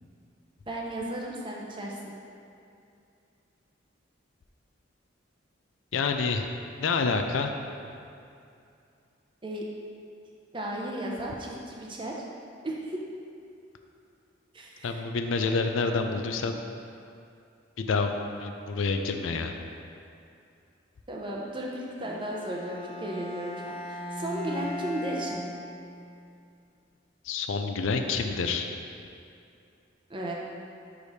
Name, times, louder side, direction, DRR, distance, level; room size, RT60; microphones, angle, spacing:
voice 1, 0.7-2.1 9.4-9.7 10.5-12.2 12.6-13.0 14.5-15.0 21.1-25.4 30.1-30.3, right 1 dB, 25° right, -2 dB, 0.6 m, -35 dB
voice 2, 5.9-6.5 6.8-7.5 14.8-16.6 17.8-18.1 18.4-19.5 27.2-28.6, left 4 dB, 80° left, 5 dB, 0.4 m, -28 dB
Bowed string instrument, 22.0-26.1, equal, 25° left, 0.9 m, -38 dB
4.9 x 4.9 x 4.1 m, 2.5 s
head